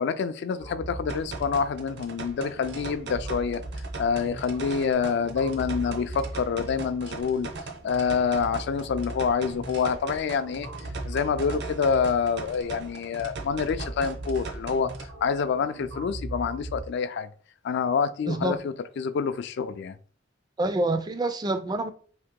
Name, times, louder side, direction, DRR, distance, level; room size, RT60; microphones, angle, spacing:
voice 1, 0.0-3.6 4.0-7.5 7.8-10.7 11.0-17.3 17.6-20.0, left 6 dB, 65° left, 0.3 m, -27 dB
sound 1, 0.6-16.8, right 1 dB, 85° right, 1.1 m, -40 dB
sound 2, 1.1-15.1, right 4 dB, 60° right, 0.6 m, -40 dB
voice 2, 18.3-18.6 20.6-21.9, right 2 dB, 20° right, 0.3 m, -27 dB
2.8 x 2.8 x 3.6 m
head